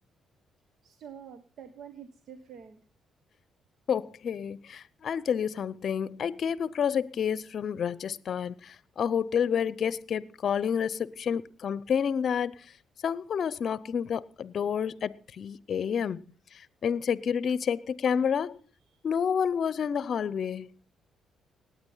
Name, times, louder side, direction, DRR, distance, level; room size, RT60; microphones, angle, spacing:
voice 1, 0.8-2.8 18.9-19.0, right 8 dB, 70° right, 1.2 m, -47 dB
voice 2, 3.9-12.5 13.0-16.2 16.5-18.6 19.0-20.7, left 7 dB, 55° left, 0.7 m, -29 dB
18.5 x 9.3 x 5.6 m
cardioid pair, 90°, 0 cm